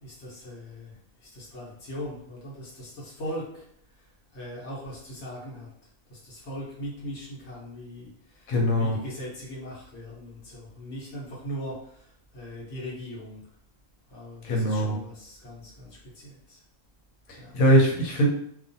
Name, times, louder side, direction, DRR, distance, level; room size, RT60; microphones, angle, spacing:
voice 1, 0.0-3.7 4.3-5.7 6.1-13.4 14.1-16.6 17.4-17.5, equal, 55° left, -5 dB, 1.2 m, -40 dB
voice 2, 8.5-9.0 14.4-14.9 17.3-18.3, equal, 85° left, -1 dB, 1.2 m, -22 dB
2.6 x 2.3 x 2.6 m, 0.65 s
omnidirectional pair, 1.4 m